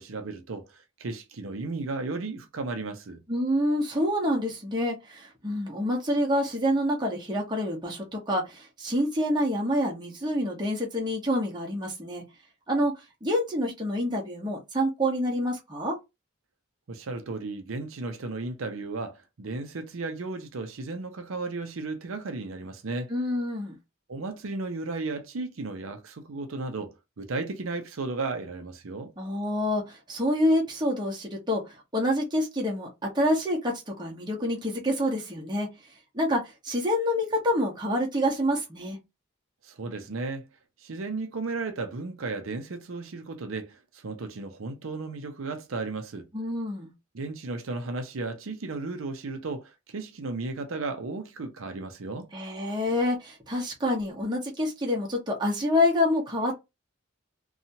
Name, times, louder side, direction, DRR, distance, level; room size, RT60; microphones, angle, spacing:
voice 1, 0.0-3.2 16.9-23.1 24.1-29.1 39.6-40.5 40.8-46.3 47.1-52.3, right 3 dB, 90° right, 0.6 m, -34 dB
voice 2, 3.3-12.2 12.7-16.0 23.1-23.7 29.2-35.7 36.1-39.0 46.3-46.9 52.3-56.6, left 1 dB, 20° right, 1.0 m, -27 dB
2.8 x 2.3 x 2.7 m
head